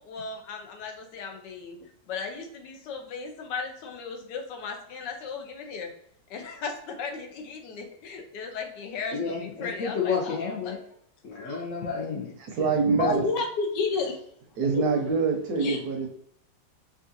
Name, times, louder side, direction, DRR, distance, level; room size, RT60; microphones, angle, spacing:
voice 1, 0.0-1.8 2.1-5.9 6.3-10.4 10.6-10.8 13.0-14.3 14.7-14.9 15.6-15.8, left 4 dB, 80° left, 4 dB, 1.3 m, -34 dB
voice 2, 9.1-10.8 11.2-12.3, left 5 dB, 60° left, -2 dB, 0.9 m, -30 dB
voice 3, 12.4-13.2 14.6-16.1, right 4 dB, 70° right, 2 dB, 1.0 m, -25 dB
4.9 x 2.5 x 2.6 m, 0.67 s
omnidirectional pair, 1.9 m